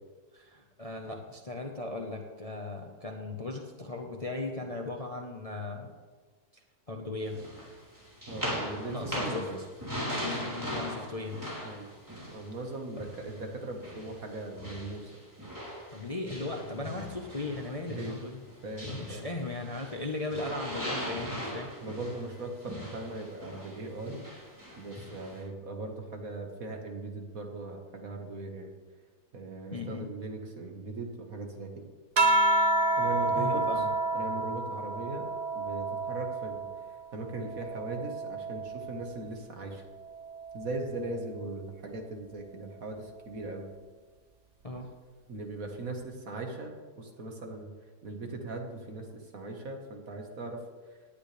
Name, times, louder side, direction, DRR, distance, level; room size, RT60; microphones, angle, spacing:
voice 1, 0.3-5.9 6.5-7.4 8.8-9.5 10.2-11.4 15.9-18.4 18.8-21.7 29.7-30.1 33.4-33.9 44.6-44.9, left 2 dB, 25° left, 2 dB, 1.0 m, -37 dB
sound 1, 7.3-13.4 13.8-20.0 20.3-25.4, equal, 10° right, 3.6 m, -39 dB
voice 2, 8.3-8.9 9.2-9.6 11.6-11.9 12.3-15.1 17.9-18.2 18.6-19.3 21.4-24.2 24.7-28.7 29.3-31.9 33.0-33.6 34.1-35.2 35.5-39.8 40.5-43.7 45.3-47.7 48.0-50.6, right 2 dB, 55° right, 2 dB, 2.0 m, -39 dB
sound 2, 32.2-37.0 37.4-39.2 40.3-40.9, right 2 dB, 75° right, 0.3 m, -29 dB
18.5 x 11.0 x 3.4 m, 1.4 s
omnidirectional pair, 1.8 m